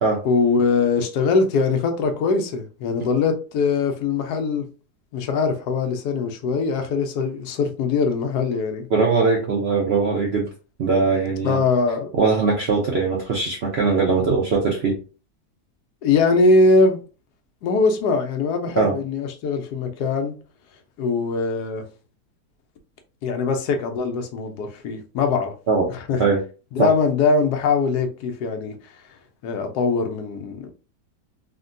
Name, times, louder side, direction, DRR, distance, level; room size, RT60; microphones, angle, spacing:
voice 1, 0.2-4.7 5.1-8.9 11.4-12.1 16.0-17.0 17.6-20.3 21.0-21.8 23.2-25.5 25.9-26.2 26.7-28.8 29.4-30.7, left 4 dB, 75° left, 1.1 m, -21 dB
voice 2, 8.9-10.5 10.8-11.6 12.1-15.0 18.8-18.9 25.7-25.9 26.2-26.4 26.8-26.9, right 4 dB, 75° right, 0.5 m, -20 dB
3.5 x 2.2 x 2.5 m
omnidirectional pair, 1.8 m